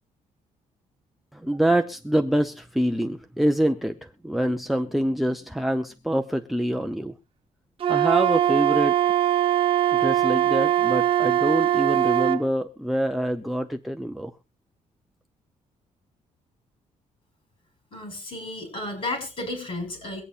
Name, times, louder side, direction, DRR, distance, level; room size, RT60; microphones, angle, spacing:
voice 1, 1.3-7.1 7.9-9.0 10.0-14.3, right 1 dB, ahead, 8 dB, 0.6 m, -25 dB
Wind instrument woodwind instrument, 7.8-12.4, right 11 dB, 45° right, 1.0 m, -21 dB
voice 2, 17.9-20.2, left 2 dB, 45° left, 5 dB, 6.0 m, -33 dB
23.5 x 8.6 x 2.5 m, 0.29 s
cardioid pair, 140°, 14 cm